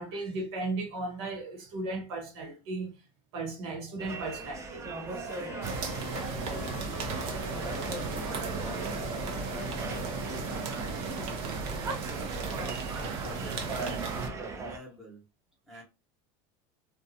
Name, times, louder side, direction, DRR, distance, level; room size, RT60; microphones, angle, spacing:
voice 1, 0.0-3.0 3.3-4.9 5.1-5.4, right 2 dB, 80° right, 1.0 m, -36 dB
sound 1, 4.0-14.8, right 3 dB, 20° right, 0.5 m, -40 dB
sound 2, 5.3-11.4, left 7 dB, 55° left, 0.5 m, -45 dB
sound 3, 5.6-14.3, right 4 dB, 55° right, 0.7 m, -35 dB
voice 2, 6.0-9.2 9.4-11.3 11.9-15.3 15.7-15.8, equal, 5° right, 1.0 m, -48 dB
2.5 x 2.3 x 2.7 m
supercardioid pair, 125°, 14 cm